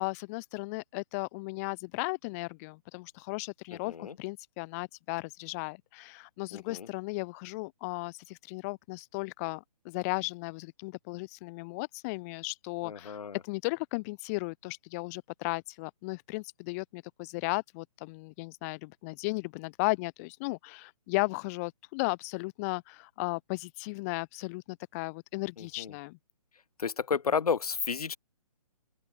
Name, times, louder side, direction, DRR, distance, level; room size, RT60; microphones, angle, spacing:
voice 1, 0.0-13.2 13.4-26.2, left 27 dB, 25° left, 1.5 m, -35 dB
voice 2, 6.5-6.9 12.8-13.4 25.6-25.9 26.8-28.2, left 6 dB, 70° left, 1.6 m, -32 dB
open air
hypercardioid pair, 150°, 20 cm